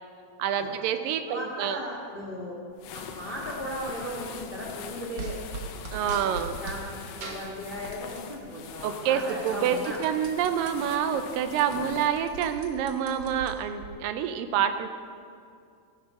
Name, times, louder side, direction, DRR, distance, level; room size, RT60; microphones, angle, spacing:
voice 1, 0.4-1.8 5.9-6.6 8.8-14.9, right 9 dB, 85° right, 9 dB, 2.4 m, -27 dB
voice 2, 1.3-2.5 2.9-5.3 6.1-6.2 6.6-10.0, equal, 30° left, -3 dB, 0.9 m, -37 dB
sound 1, 2.8-12.6, left 7 dB, 80° left, 1.5 m, -43 dB
sound 2, 5.2-6.8 7.2-8.3 8.7-10.7 11.2-11.3 11.5-13.9, right 3 dB, 55° right, 1.3 m, -40 dB
14.5 x 7.7 x 5.6 m, 2.4 s
omnidirectional pair, 3.8 m